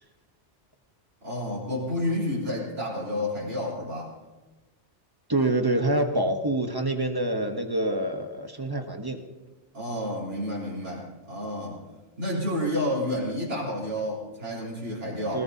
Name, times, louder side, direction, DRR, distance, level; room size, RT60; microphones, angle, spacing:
voice 1, 1.2-4.2 9.7-11.9 12.2-15.4, left 1 dB, 85° right, -6 dB, 4.0 m, -30 dB
voice 2, 5.3-9.2 15.3-15.4, right 1 dB, 20° right, 5 dB, 1.0 m, -26 dB
19.5 x 19.0 x 2.8 m, 1.2 s
omnidirectional pair, 1.2 m